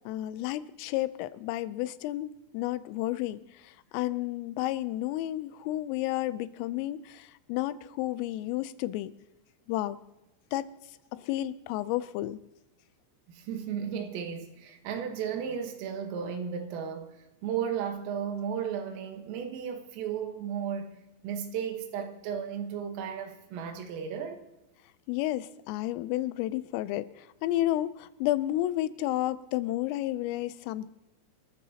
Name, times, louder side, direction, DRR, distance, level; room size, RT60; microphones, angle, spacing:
voice 1, 0.1-9.1 9.7-10.0 10.5-10.7 11.1-12.4 25.1-30.9, left 15 dB, 85° left, 3.2 m, -31 dB
voice 2, 13.3-21.0 21.2-24.4, right 8 dB, 80° right, 4.0 m, -34 dB
26.0 x 14.0 x 2.9 m
omnidirectional pair, 5.8 m